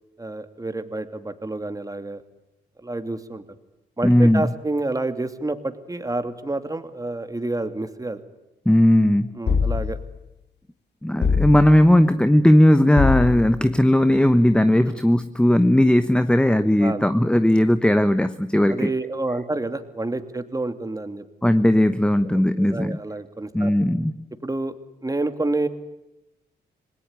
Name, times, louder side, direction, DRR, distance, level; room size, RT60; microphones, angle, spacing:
voice 1, 0.2-2.2 2.8-3.4 4.0-8.2 9.3-10.0 14.9-15.0 16.8-17.0 18.7-21.2 22.2-23.9 24.4-24.7 25.0-25.7, right 2 dB, 20° right, 9 dB, 2.6 m, -28 dB
voice 2, 4.0-4.4 8.7-9.4 11.0-18.9 21.4-23.0 23.5-24.1, left 1 dB, 5° left, 12 dB, 1.0 m, -17 dB
sound 1, 9.5-10.2 11.2-12.0 13.0-13.7, left 5 dB, 60° left, 2.3 m, -23 dB
27.0 x 20.0 x 9.7 m, 0.93 s
cardioid pair, 65°, 20 cm